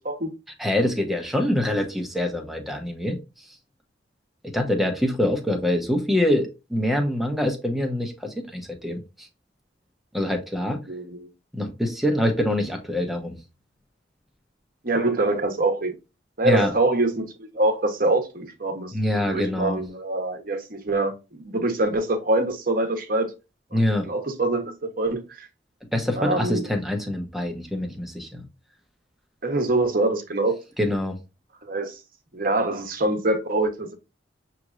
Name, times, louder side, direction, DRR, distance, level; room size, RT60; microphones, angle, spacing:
voice 1, 0.6-3.2 4.4-9.3 10.1-10.8 11.5-13.4 16.4-16.7 18.9-19.8 23.7-24.1 25.9-28.4 30.8-31.2, left 1 dB, ahead, 0.9 m, -25 dB
voice 2, 10.9-11.3 14.8-15.9 16.4-18.9 19.3-23.3 23.7-25.5 26.2-26.7 29.4-30.6 31.6-32.0 32.3-33.9, right 2 dB, 50° right, 1.0 m, -24 dB
6.7 x 3.1 x 2.5 m
head